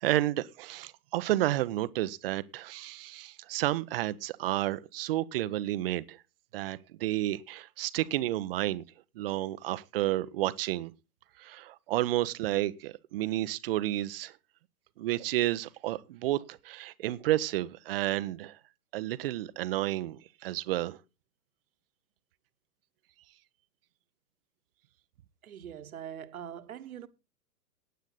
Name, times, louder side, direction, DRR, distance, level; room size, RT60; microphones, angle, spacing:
voice 1, 0.0-6.2 6.5-8.8 9.1-10.9 11.4-14.3 15.0-18.6 18.9-21.0, right 15 dB, 35° right, 0.8 m, -31 dB
voice 2, 25.4-27.1, right 9 dB, 60° right, 1.5 m, -42 dB
16.0 x 9.3 x 4.0 m
figure-of-eight pair, 115°, 48 cm